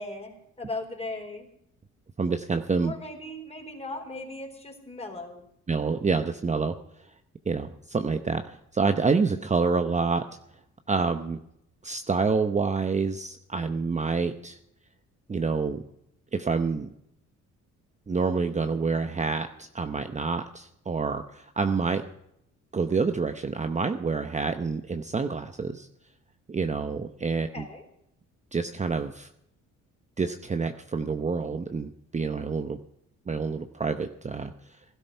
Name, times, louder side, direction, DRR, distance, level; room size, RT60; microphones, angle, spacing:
voice 1, 0.0-1.5 2.8-5.4 27.5-27.8, left 2 dB, 20° left, 3 dB, 4.0 m, -38 dB
voice 2, 2.2-2.9 5.7-6.7 7.5-10.2 10.9-11.4 11.8-14.6 15.3-15.8 16.3-16.9 18.1-22.0 22.7-25.9 26.5-27.6 28.5-29.3 30.2-32.8 33.3-34.5, right 4 dB, 25° right, 7 dB, 0.8 m, -27 dB
16.5 x 12.5 x 5.6 m, 0.77 s
cardioid pair, 90°, 30 cm